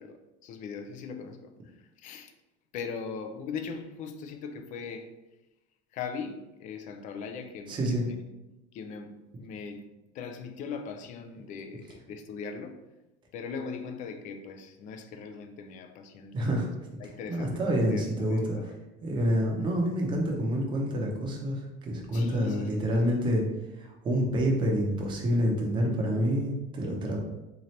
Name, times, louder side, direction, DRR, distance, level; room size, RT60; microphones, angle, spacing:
voice 1, 0.0-2.3 2.7-5.1 5.9-8.2 8.7-9.9 10.1-12.7 13.3-16.7 17.0-18.7 22.1-23.2, left 5 dB, 40° left, 7 dB, 0.4 m, -40 dB
voice 2, 7.7-8.0 16.3-16.7 17.3-18.6 19.0-23.4 23.8-27.2, equal, 25° right, 0 dB, 0.7 m, -27 dB
3.8 x 2.8 x 3.1 m, 1.0 s
cardioid pair, 160°, 19 cm